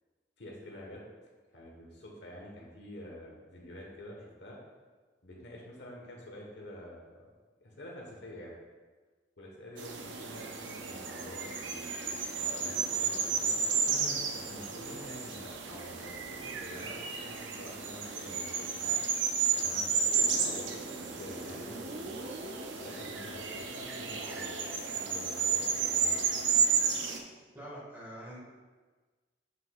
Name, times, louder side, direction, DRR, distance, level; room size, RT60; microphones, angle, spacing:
voice 1, 0.4-1.0 1.5-4.6 5.2-7.1 7.6-8.5 9.4-13.6 14.5-19.0 19.5-22.1 22.8-26.4, left 1 dB, 70° left, -2 dB, 1.3 m, -47 dB
sound 1, 9.8-27.2, right 6 dB, 85° right, 0.7 m, -32 dB
sound 2, 20.2-26.6, right 1 dB, 40° right, 0.5 m, -45 dB
voice 2, 27.5-28.4, right 1 dB, 10° right, -6 dB, 1.8 m, -44 dB
7.4 x 6.4 x 2.4 m, 1.4 s
head